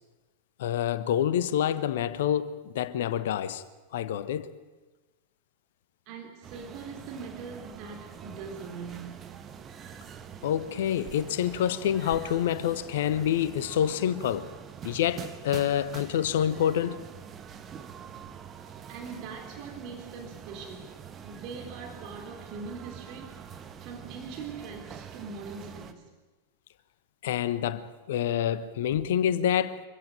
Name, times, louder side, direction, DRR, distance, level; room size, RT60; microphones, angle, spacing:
voice 1, 0.6-3.6 3.9-4.5 10.4-14.5 14.8-17.0 27.2-29.8, left 10 dB, 55° left, 1.2 m, -27 dB
voice 2, 6.1-9.3 18.9-20.9 21.2-23.4 23.8-26.1, right 5 dB, 40° right, 3.4 m, -42 dB
Carrefour's Fish Market, 6.4-25.9, right 7 dB, 25° right, 1.5 m, -45 dB
24.5 x 15.0 x 9.2 m
figure-of-eight pair, 90°, 0 cm